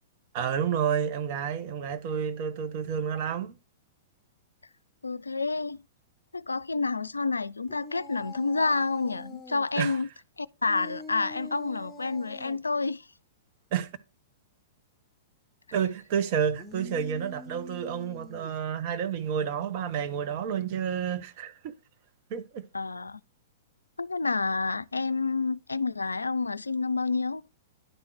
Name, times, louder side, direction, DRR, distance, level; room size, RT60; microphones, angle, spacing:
voice 1, 0.3-3.6 9.8-10.0 13.7-13.9 15.7-21.7 22.3-22.6, right 8 dB, 45° right, 1.1 m, -30 dB
voice 2, 5.0-5.8 6.3-10.1 10.4-13.1 22.7-23.2 24.0-27.4, left 3 dB, 85° left, 0.4 m, -29 dB
sound 1, 7.7-9.6 10.7-12.6 16.4-18.7, left 3 dB, 10° left, 1.3 m, -45 dB
10.5 x 3.8 x 6.1 m
figure-of-eight pair, 105°, 0 cm